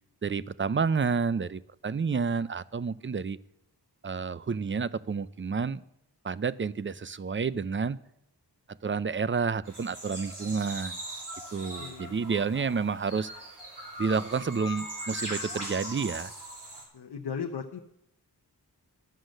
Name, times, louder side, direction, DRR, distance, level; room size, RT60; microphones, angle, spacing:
voice 1, 0.2-3.4 4.0-5.8 6.2-8.0 8.8-11.0 11.5-13.3 14.0-16.3, right 5 dB, 30° right, 17 dB, 0.5 m, -30 dB
sound 1, 9.7-16.8, equal, 75° right, 3.5 m, -40 dB
voice 2, 11.8-12.2 16.9-17.8, left 6 dB, 65° left, 3 dB, 0.8 m, -36 dB
11.5 x 7.6 x 6.5 m, 0.78 s
wide cardioid pair, 40°, 42 cm